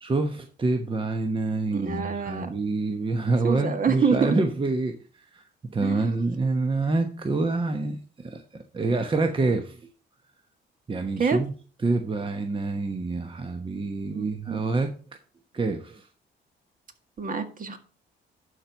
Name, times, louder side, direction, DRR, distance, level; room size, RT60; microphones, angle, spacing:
voice 1, 0.0-8.4 8.7-9.9 10.9-11.5 11.8-14.9 15.5-16.1, right 3 dB, 25° right, 1.1 m, -27 dB
voice 2, 1.7-2.5 3.4-4.4 5.8-6.1 11.2-11.4 14.1-14.6 17.2-17.8, right 5 dB, 45° right, 1.8 m, -26 dB
11.5 x 4.6 x 5.4 m
cardioid pair, 90°, 20 cm